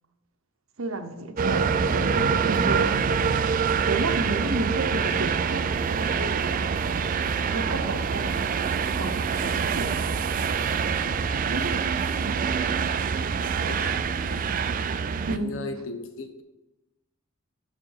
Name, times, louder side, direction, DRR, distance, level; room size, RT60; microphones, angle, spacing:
voice 1, 0.8-3.4 3.9-7.0 7.5-8.3 8.9-9.1 9.4-10.1 11.5-12.4 15.3-15.5, right 2 dB, 90° right, 7 dB, 0.9 m, -32 dB
sound 1, 1.4-15.4, right 6 dB, 40° right, 0.4 m, -25 dB
sound 2, 1.4-11.6, equal, 70° right, 1.6 m, -40 dB
voice 2, 13.4-14.6 15.3-16.4, left 3 dB, 75° left, 7 dB, 0.9 m, -38 dB
7.4 x 6.0 x 4.7 m, 1.0 s
head